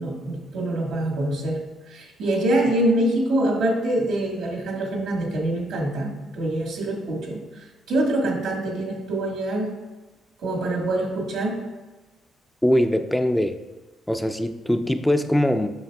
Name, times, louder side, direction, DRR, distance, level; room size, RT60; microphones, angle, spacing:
voice 1, 0.0-9.7 10.4-11.6, right 1 dB, 80° right, 1 dB, 1.4 m, -25 dB
voice 2, 12.6-13.6 14.1-15.7, left 1 dB, 5° left, 7 dB, 0.3 m, -21 dB
7.8 x 5.6 x 2.3 m, 1.2 s
cardioid pair, 90°, 0 cm